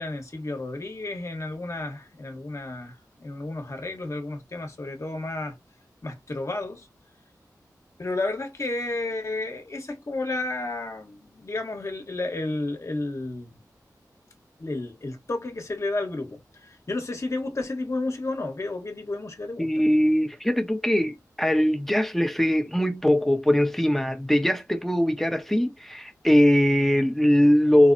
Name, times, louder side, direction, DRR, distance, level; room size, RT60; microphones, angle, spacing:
voice 1, 0.0-5.6 6.0-6.9 8.0-13.6 14.6-19.7, left 2 dB, 45° left, 1.0 m, -32 dB
voice 2, 19.6-27.9, equal, 5° left, 0.7 m, -21 dB
4.2 x 2.0 x 2.5 m
wide cardioid pair, 75°, 7 cm